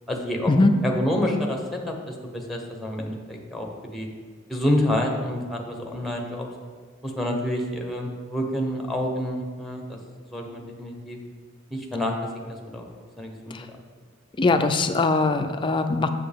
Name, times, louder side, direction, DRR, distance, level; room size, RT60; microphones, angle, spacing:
voice 1, 0.1-1.6 1.9-4.1 4.5-6.5 7.0-10.0 10.2-11.2 11.7-12.9 13.2-13.5, left 1 dB, ahead, 1 dB, 0.8 m, -28 dB
voice 2, 14.4-16.1, left 3 dB, 25° left, 7 dB, 0.4 m, -21 dB
7.6 x 7.0 x 3.5 m, 1.5 s
head